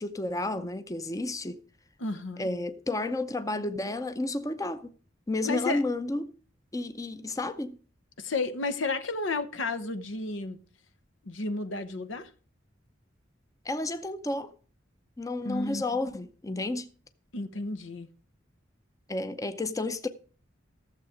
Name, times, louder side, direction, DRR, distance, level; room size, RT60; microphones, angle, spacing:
voice 1, 0.0-1.6 2.4-4.9 5.3-6.3 6.7-7.8 13.6-14.5 15.2-16.9 19.1-20.1, left 2 dB, 20° left, 0.6 m, -31 dB
voice 2, 2.0-2.5 5.4-5.8 8.2-10.6 11.2-12.3 15.4-15.8 17.3-18.1, left 3 dB, 85° left, 1.0 m, -32 dB
15.0 x 7.2 x 4.9 m
head